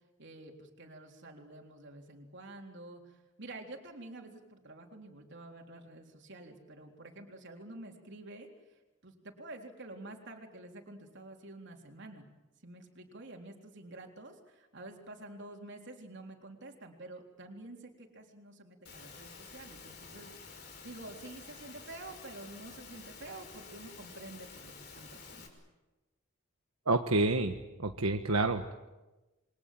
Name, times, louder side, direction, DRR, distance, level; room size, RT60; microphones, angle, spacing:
voice 1, 0.2-12.3 12.6-25.5, right 2 dB, 55° right, 2 dB, 3.8 m, -49 dB
Engine / Mechanisms, 18.9-25.5, left 4 dB, 50° left, 5.5 m, -50 dB
voice 2, 26.9-28.7, right 2 dB, 80° right, 5 dB, 1.4 m, -29 dB
28.0 x 24.0 x 7.7 m, 1.1 s
head